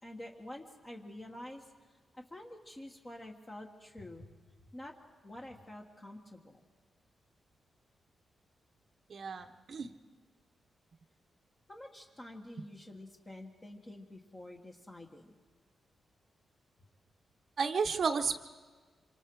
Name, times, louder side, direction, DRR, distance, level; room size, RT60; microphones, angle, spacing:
voice 1, 0.0-4.3 4.7-4.9 5.2-6.6 11.7-15.3, left 1 dB, 25° left, 0 dB, 1.6 m, -48 dB
voice 2, 9.1-9.9 17.6-18.4, right 5 dB, 50° right, 7 dB, 1.0 m, -32 dB
26.5 x 25.5 x 4.8 m, 1.4 s
wide cardioid pair, 130°, 0 cm